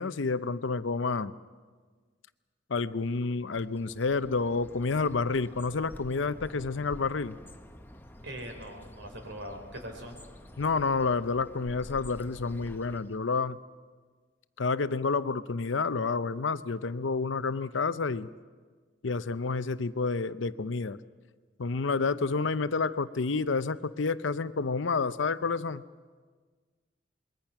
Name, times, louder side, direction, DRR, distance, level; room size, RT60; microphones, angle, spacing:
voice 1, 0.0-1.3 2.7-7.4 10.6-13.6 14.6-18.3 19.0-21.0 21.6-25.8, left 4 dB, 75° left, 14 dB, 0.7 m, -29 dB
Bird, 3.5-13.3, left 1 dB, 10° left, 0.9 m, -49 dB
voice 2, 8.2-10.2, equal, 65° right, 4 dB, 4.2 m, -41 dB
26.5 x 21.5 x 5.9 m, 1.5 s
head